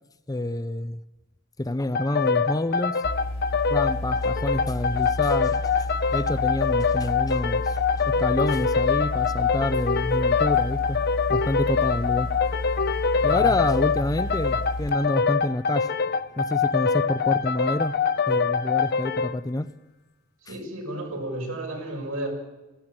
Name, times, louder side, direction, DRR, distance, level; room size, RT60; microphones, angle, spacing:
voice 1, 0.3-1.0 1.6-3.0 3.7-11.0 11.3-12.3 13.2-15.9 16.4-17.9 18.3-19.7, left 2 dB, 20° left, 12 dB, 0.6 m, -28 dB
sound 1, 1.9-19.4, left 5 dB, 50° left, 0.7 m, -24 dB
sound 2, 3.0-14.9, left 1 dB, 80° left, 2.9 m, -32 dB
voice 2, 13.1-13.5 20.5-22.3, right 1 dB, 80° right, 1 dB, 6.8 m, -33 dB
20.0 x 15.5 x 8.9 m, 1.1 s
head